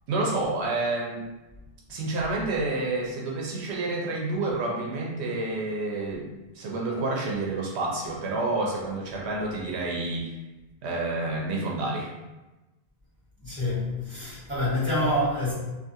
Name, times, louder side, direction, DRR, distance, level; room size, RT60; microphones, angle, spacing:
voice 1, 0.1-1.3 1.9-10.3 10.8-12.1, right 2 dB, 85° right, -2 dB, 0.9 m, -29 dB
voice 2, 13.4-15.5, left 1 dB, 10° right, -10 dB, 1.1 m, -27 dB
2.5 x 2.4 x 2.6 m, 1.1 s
omnidirectional pair, 1.1 m